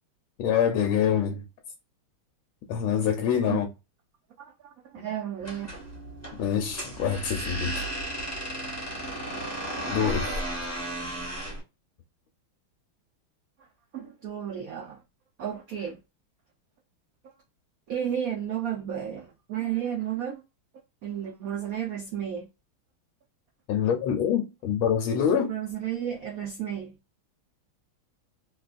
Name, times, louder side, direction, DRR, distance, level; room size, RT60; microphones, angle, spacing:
voice 1, 0.4-1.4 2.7-3.7 5.0-5.1 6.4-7.9 9.9-10.4 23.7-25.5, left 8 dB, 80° left, 1.4 m, -25 dB
voice 2, 4.4-5.7 13.6-13.7 13.9-15.0 15.4-16.0 17.9-20.4 21.0-22.5 25.3-27.0, right 9 dB, 75° right, 0.8 m, -33 dB
sound 1, 5.4-11.6, right 1 dB, 10° left, 0.9 m, -34 dB
3.9 x 2.4 x 2.4 m
omnidirectional pair, 2.3 m